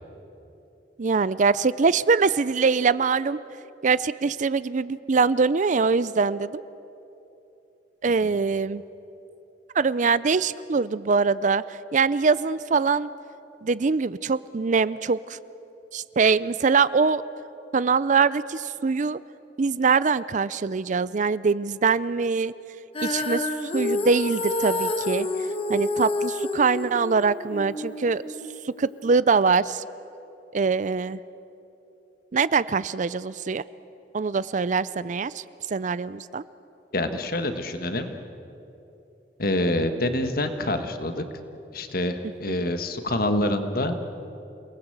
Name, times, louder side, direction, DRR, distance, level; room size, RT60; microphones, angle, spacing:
voice 1, 1.0-3.4 3.8-6.6 8.0-8.8 9.7-13.1 13.6-15.4 15.9-17.2 17.7-19.2 19.6-22.5 23.0-25.3 25.7-28.2 28.6-29.8 30.5-31.2 32.3-33.6 34.1-36.4 42.5-42.6, right 5 dB, 45° right, 17 dB, 0.5 m, -23 dB
Female singing, 22.9-29.2, left 2 dB, 30° left, 1.5 m, -29 dB
voice 2, 36.9-38.1 39.4-41.2 41.7-44.0, left 1 dB, 55° left, 8 dB, 1.6 m, -26 dB
28.5 x 19.5 x 8.1 m, 2.9 s
head